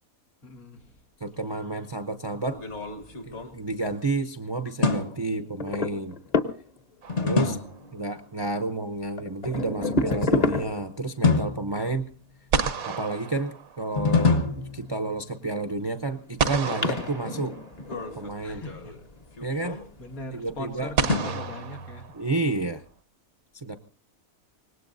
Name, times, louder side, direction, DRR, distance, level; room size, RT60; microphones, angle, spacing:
voice 1, 0.4-1.0 18.4-19.0 19.4-22.1, left 2 dB, 90° left, 4 dB, 2.5 m, -41 dB
voice 2, 1.2-2.6 3.2-6.2 7.2-7.6 7.9-12.1 12.9-17.5 18.2-18.6 19.4-19.8 20.3-20.9 22.1-22.8 23.5-23.8, right 2 dB, 25° right, 8 dB, 0.6 m, -30 dB
sound 1, 2.4-4.2 4.8-5.5 7.1-8.0 10.0-10.7 11.2-12.3 14.0-15.4 17.7-20.2 21.1-22.0, left 4 dB, 55° left, 1.7 m, -28 dB
sound 2, 5.6-7.0 8.5-8.6 9.2-11.1 14.9-15.6 16.2-16.3 16.7-18.7 19.6-19.9 20.7-20.8 21.3-21.4, left 3 dB, 30° left, 1.0 m, -29 dB
sound 3, 7.0-7.9 12.0-12.1 12.5-14.2 16.4-18.0 19.3-19.4 21.0-22.6, right 5 dB, 75° right, 1.4 m, -31 dB
25.0 x 19.5 x 2.6 m, 0.38 s
omnidirectional pair, 1.5 m